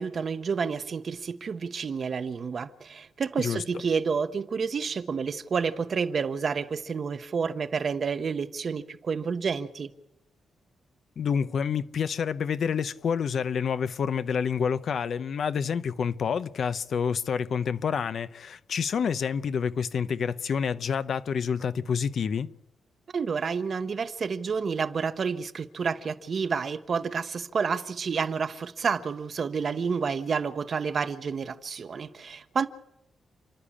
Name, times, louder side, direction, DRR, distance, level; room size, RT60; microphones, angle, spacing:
voice 1, 0.0-9.9 23.1-32.7, right 5 dB, 40° right, 0.9 m, -29 dB
voice 2, 11.2-22.5, left 7 dB, 50° left, 0.7 m, -28 dB
30.0 x 11.5 x 8.6 m
wide cardioid pair, 165°, 0 cm